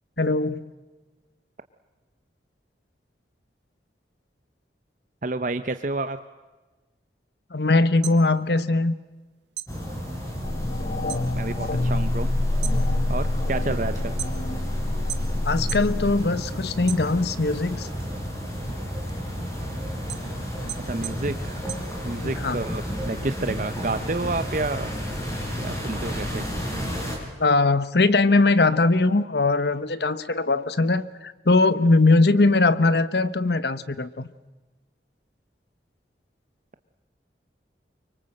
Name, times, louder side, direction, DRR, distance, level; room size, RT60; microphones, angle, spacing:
voice 1, 0.2-0.6 7.5-8.9 15.4-17.9 20.6-20.7 22.2-22.6 27.4-34.3, left 3 dB, 70° left, 15 dB, 1.1 m, -21 dB
voice 2, 5.2-6.2 11.3-12.3 13.1-14.2 20.8-21.6 22.0-24.9 25.6-26.5, right 2 dB, 45° right, 10 dB, 0.8 m, -29 dB
sound 1, 7.8-9.2 9.5-11.3 11.6-12.1 12.5-14.7 15.1-15.9 16.3-17.5 18.0-22.5, right 13 dB, 85° right, 1.3 m, -38 dB
sound 2, 9.7-27.2, equal, 15° left, 5.5 m, -32 dB
sound 3, 10.4-16.2, left 2 dB, 45° left, 0.7 m, -26 dB
25.5 x 24.0 x 7.8 m, 1.2 s
head